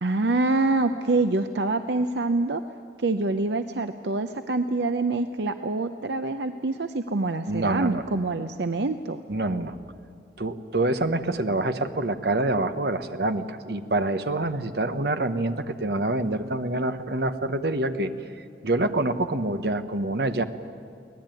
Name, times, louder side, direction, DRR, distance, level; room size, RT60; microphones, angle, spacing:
voice 1, 0.0-2.6 3.0-9.2, right 3 dB, 85° right, 9 dB, 0.7 m, -26 dB
voice 2, 7.5-8.0 9.3-9.8 10.4-18.1 18.4-20.4, right 2 dB, 70° right, 9 dB, 1.1 m, -26 dB
24.0 x 18.0 x 9.1 m, 2.4 s
head